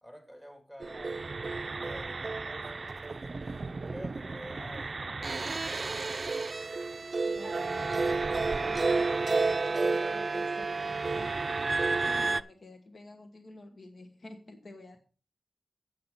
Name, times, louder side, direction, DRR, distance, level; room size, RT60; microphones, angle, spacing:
voice 1, 0.0-6.0, equal, 15° left, 3.1 m, -50 dB
sound 1, 0.8-12.4, right 3 dB, 50° right, 0.4 m, -31 dB
voice 2, 7.3-11.3 11.8-15.0, left 2 dB, 60° left, 1.2 m, -49 dB
8.6 x 7.6 x 5.5 m
cardioid pair, 55°, 0 cm